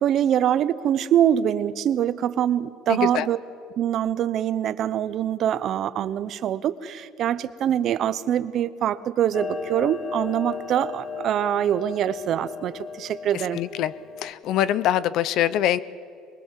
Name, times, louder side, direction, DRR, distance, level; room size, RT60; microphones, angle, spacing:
voice 1, 0.0-3.4 3.8-13.6, right 10 dB, 40° right, 14 dB, 0.7 m, -24 dB
voice 2, 2.9-3.3 13.3-13.9 14.2-15.8, left 11 dB, 45° left, 18 dB, 0.6 m, -24 dB
Clock, 9.3-14.3, left 5 dB, 30° left, 1.2 m, -35 dB
23.5 x 21.5 x 7.5 m, 2.4 s
cardioid pair, 175°, 0 cm